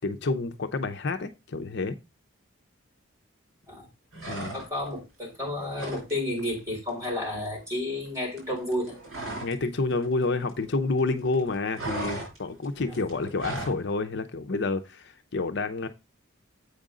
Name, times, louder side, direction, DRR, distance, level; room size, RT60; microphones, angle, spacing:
voice 1, 0.0-2.0 4.3-4.5 9.4-15.9, left 3 dB, 60° left, 0.6 m, -29 dB
sound 1, 4.1-5.0 5.3-6.1 6.4-6.6 6.9-9.7 9.9-11.0 11.3-13.8, right 2 dB, 85° right, 4.2 m, -37 dB
voice 2, 4.5-9.0 12.9-13.0, left 1 dB, 15° right, 3.7 m, -31 dB
8.2 x 5.1 x 3.8 m
head